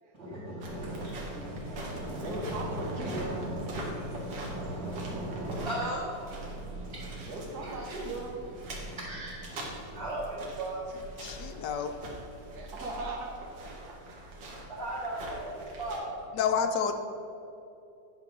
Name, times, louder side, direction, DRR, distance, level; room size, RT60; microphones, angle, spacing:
voice 1, 0.1-8.1 8.4-11.9 12.3-12.7 13.9-16.4, right 1 dB, 35° right, -12 dB, 2.3 m, -38 dB
sound 1, 0.6-16.0, right 1 dB, 90° right, 2.1 m, -43 dB
voice 2, 2.2-3.5 7.3-8.4 12.5-13.6 13.8-14.3, right 2 dB, 60° right, 0 dB, 1.6 m, -38 dB
voice 3, 11.2-11.9 16.3-16.9, left 7 dB, 75° left, 7 dB, 1.2 m, -29 dB
9.8 x 3.8 x 6.0 m, 2.8 s
omnidirectional pair, 2.0 m